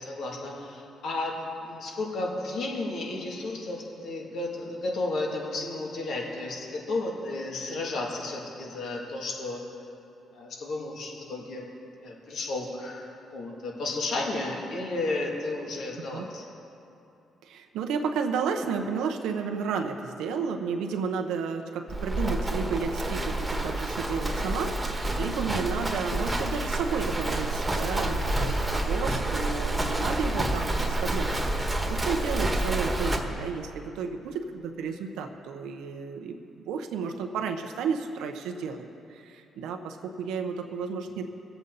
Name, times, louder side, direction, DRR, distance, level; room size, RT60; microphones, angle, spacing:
voice 1, 0.0-9.6 10.3-11.7 12.0-16.4, left 2 dB, 70° left, -2 dB, 2.7 m, -33 dB
voice 2, 17.4-36.4 36.6-41.2, right 5 dB, 90° right, 4 dB, 0.9 m, -32 dB
Livestock farm animals working animals, 21.9-33.2, right 1 dB, 15° right, 1.4 m, -28 dB
23.0 x 8.0 x 4.1 m, 2.7 s
cardioid pair, 90°, 0 cm